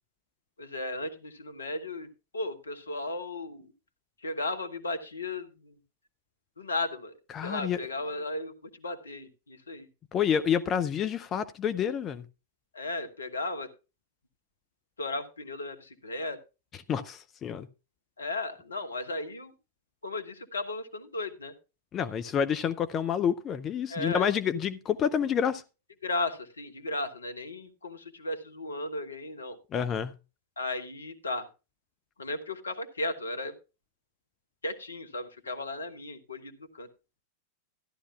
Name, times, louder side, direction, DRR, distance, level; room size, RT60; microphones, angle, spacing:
voice 1, 0.6-2.1 2.3-3.7 4.2-5.7 6.6-7.1 7.4-9.9 12.7-13.7 15.0-16.4 18.2-19.5 20.0-21.5 23.9-24.3 26.0-29.6 30.6-31.5 32.2-33.5 34.6-36.9, left 2 dB, 75° left, 1.1 m, -35 dB
voice 2, 7.3-7.8 10.1-12.3 16.9-17.7 21.9-25.6 29.7-30.1, left 8 dB, 30° left, 0.5 m, -28 dB
14.0 x 11.5 x 2.3 m
figure-of-eight pair, 90°, 0 cm